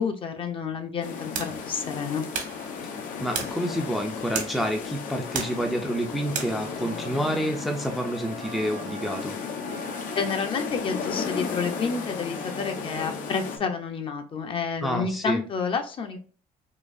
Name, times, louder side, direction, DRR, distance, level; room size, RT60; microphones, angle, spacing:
voice 1, 0.0-2.2 10.0-16.2, left 5 dB, 40° left, 5 dB, 0.7 m, -29 dB
sound 1, 1.0-13.6, left 6 dB, 70° left, 0.8 m, -35 dB
sound 2, 1.2-6.8, right 6 dB, 70° right, 1.3 m, -37 dB
voice 2, 3.2-9.4 14.8-15.4, equal, ahead, 2 dB, 0.5 m, -28 dB
sound 3, 6.3-13.8, right 4 dB, 40° right, 0.7 m, -43 dB
3.9 x 2.8 x 2.6 m, 0.40 s
cardioid pair, 130°, 14 cm